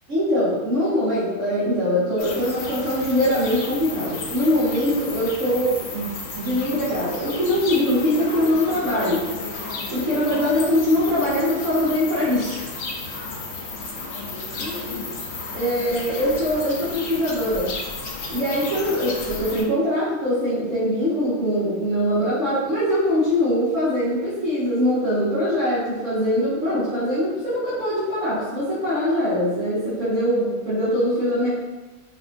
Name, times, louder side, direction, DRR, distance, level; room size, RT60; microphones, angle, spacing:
voice 1, 0.1-6.1 6.4-9.2 9.9-12.7 14.6-15.0 15.5-17.7 18.3-31.5, equal, 65° right, -13 dB, 1.8 m, -22 dB
sound 1, 2.2-19.6, left 3 dB, 75° left, 1.1 m, -33 dB
5.2 x 2.8 x 2.5 m, 1.2 s
omnidirectional pair, 1.4 m